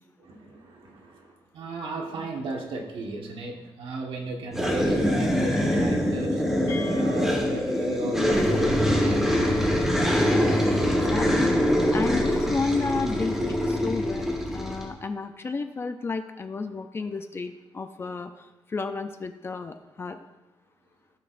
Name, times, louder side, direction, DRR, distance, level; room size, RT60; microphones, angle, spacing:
voice 1, 0.2-6.4 6.9-9.3, right 2 dB, 60° right, 1 dB, 1.4 m, -35 dB
sound 1, 4.5-14.9, equal, 5° right, 1.3 m, -24 dB
sound 2, 6.7-10.4, equal, 75° left, 2.7 m, -45 dB
voice 2, 10.8-11.6 11.9-20.2, left 4 dB, 25° left, 7 dB, 0.4 m, -32 dB
15.0 x 6.3 x 2.6 m, 1.0 s
wide cardioid pair, 175°, 10 cm